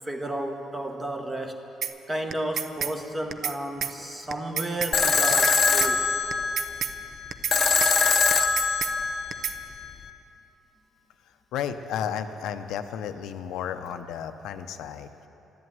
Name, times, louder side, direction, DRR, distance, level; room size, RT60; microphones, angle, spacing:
voice 1, 0.0-1.6 2.1-6.1, right 1 dB, 15° right, 4 dB, 1.3 m, -32 dB
sound 1, 1.8-1.9 2.3-2.9 3.3-3.6 3.8-3.9 4.3-4.9 5.3-5.6 5.8-5.9 6.3-6.9 7.3-7.6 7.8-7.9 8.3-8.9 9.3-9.6, right 7 dB, 55° right, 0.6 m, -29 dB
sound 2, 4.9-9.9, left 5 dB, 35° left, 0.9 m, -23 dB
voice 2, 11.5-15.3, left 8 dB, 85° left, 8 dB, 0.7 m, -33 dB
14.0 x 11.0 x 9.4 m, 3.0 s
cardioid pair, 130°, 0 cm